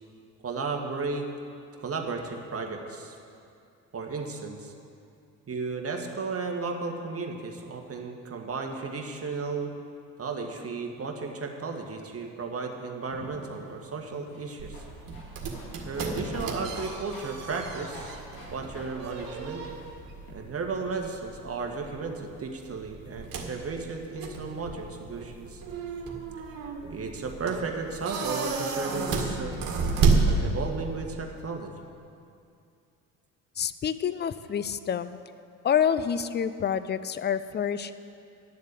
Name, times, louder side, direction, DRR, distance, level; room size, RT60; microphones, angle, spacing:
voice 1, 0.4-1.2 1.8-3.2 3.9-4.7 5.5-9.7 10.2-14.8 15.8-18.1 18.5-19.6 20.3-25.6 26.9-29.6 30.2-31.9, right 4 dB, 35° right, 3 dB, 1.7 m, -34 dB
sound 1, 13.1-20.3, left 1 dB, 80° left, 2.3 m, -49 dB
sound 2, 14.6-31.0, right 4 dB, 55° right, 2.0 m, -31 dB
voice 2, 33.6-35.2 35.6-37.9, left 8 dB, 25° left, 13 dB, 0.5 m, -27 dB
11.0 x 7.3 x 8.3 m, 2.5 s
hypercardioid pair, 60°, 42 cm